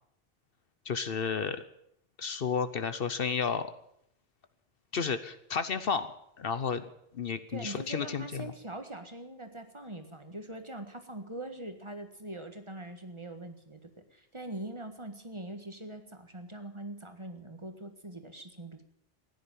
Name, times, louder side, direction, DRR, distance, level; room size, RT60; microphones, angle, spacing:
voice 1, 0.8-1.6 2.2-3.7 4.9-6.8 7.1-8.5, left 6 dB, 60° left, 12 dB, 1.0 m, -32 dB
voice 2, 7.5-18.8, right 1 dB, 25° right, 7 dB, 1.6 m, -42 dB
16.0 x 10.0 x 8.9 m, 0.74 s
omnidirectional pair, 1.1 m